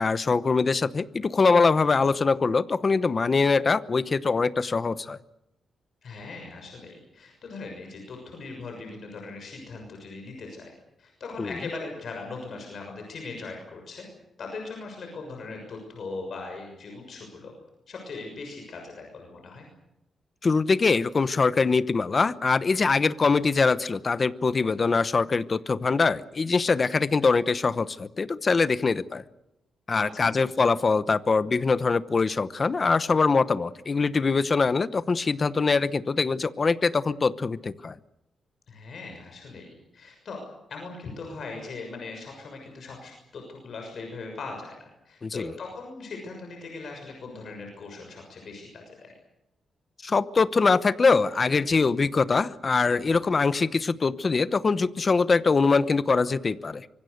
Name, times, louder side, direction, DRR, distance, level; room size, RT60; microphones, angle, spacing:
voice 1, 0.0-5.2 11.4-11.5 20.4-29.2 29.9-38.0 45.2-45.5 50.0-56.9, left 4 dB, 30° left, 14 dB, 0.9 m, -23 dB
voice 2, 6.0-10.7 11.0-14.1 14.4-17.5 17.9-19.7 30.0-30.3 38.7-40.4 40.7-49.1, left 3 dB, 55° left, 2 dB, 6.5 m, -39 dB
25.5 x 24.0 x 6.7 m, 0.88 s
wide cardioid pair, 140°, 0 cm